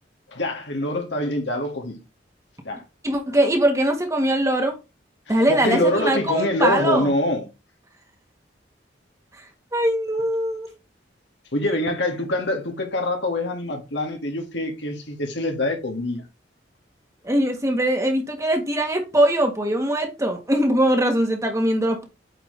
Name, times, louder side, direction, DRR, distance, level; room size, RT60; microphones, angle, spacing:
voice 1, 0.3-2.0 2.6-2.8 5.5-7.5 11.5-16.2, left 1 dB, 80° left, 2.1 m, -25 dB
voice 2, 3.0-4.7 5.3-7.1 9.7-10.7 17.2-22.1, right 1 dB, 15° right, 1.5 m, -21 dB
8.7 x 4.8 x 3.3 m
head